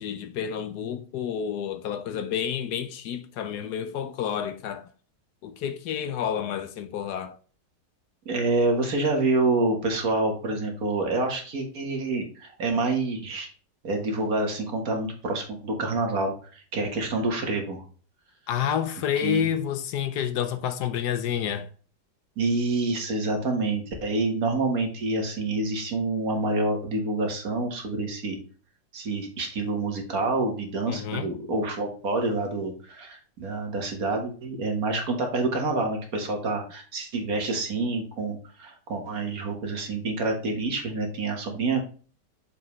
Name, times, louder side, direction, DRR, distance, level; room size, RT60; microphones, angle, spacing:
voice 1, 0.0-4.9 5.4-7.3 18.5-21.7 30.9-31.3, left 8 dB, 70° left, 1.2 m, -29 dB
voice 2, 8.3-13.5 13.8-17.8 19.2-19.4 22.4-28.4 28.9-41.8, right 2 dB, 55° right, 1.9 m, -27 dB
6.8 x 5.3 x 3.1 m
omnidirectional pair, 1.9 m